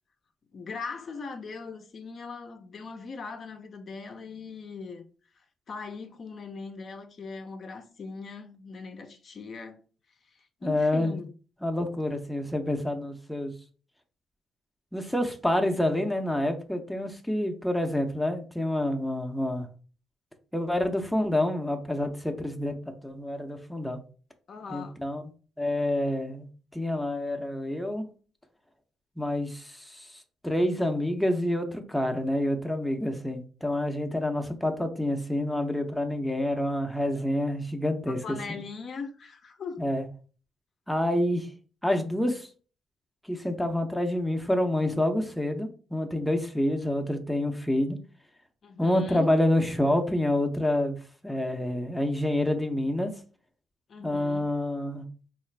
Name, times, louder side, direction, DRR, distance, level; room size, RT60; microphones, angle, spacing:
voice 1, 0.5-5.1 5.7-9.8 10.3-11.3 24.5-25.0 38.1-39.9 48.6-49.3 53.9-54.5, left 4 dB, 50° left, 0.5 m, -40 dB
voice 2, 10.6-11.2 11.6-13.5 14.9-19.7 20.5-24.0 24.7-25.2 25.6-28.1 29.2-30.1 30.4-38.2 39.8-40.0 40.9-41.5 41.8-42.5 43.3-48.0 48.8-51.0 51.2-53.1 54.0-55.0, left 1 dB, ahead, 0.5 m, -28 dB
3.7 x 2.4 x 3.2 m
cardioid pair, 90°, 0 cm